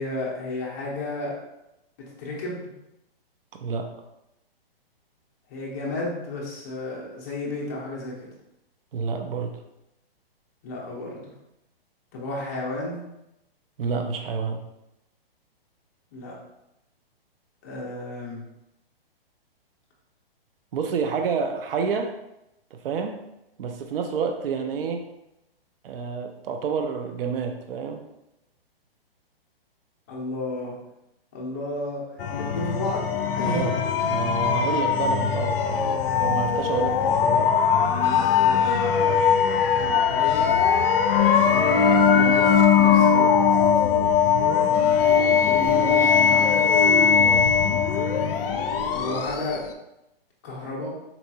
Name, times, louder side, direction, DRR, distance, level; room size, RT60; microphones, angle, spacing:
voice 1, 0.0-1.3 2.2-2.7 5.5-8.3 10.6-11.3 12.1-13.0 16.1-16.3 17.6-18.4 30.1-30.7 31.3-34.1 38.4-38.8 39.5-40.5 41.3-43.3 45.1-46.9 48.9-49.6 50.4-50.9, left 2 dB, 20° left, -4 dB, 0.5 m, -33 dB
voice 2, 3.5-3.9 8.9-9.6 13.8-14.6 20.7-22.2 22.7-23.3 23.6-25.1 25.8-28.0 33.4-33.8 34.1-37.6 47.2-47.5, right 5 dB, 65° right, 5 dB, 0.5 m, -29 dB
sound 1, 32.2-49.7, left 7 dB, 65° left, 0.5 m, -20 dB
4.0 x 2.7 x 2.2 m, 0.88 s
hypercardioid pair, 165°, 30 cm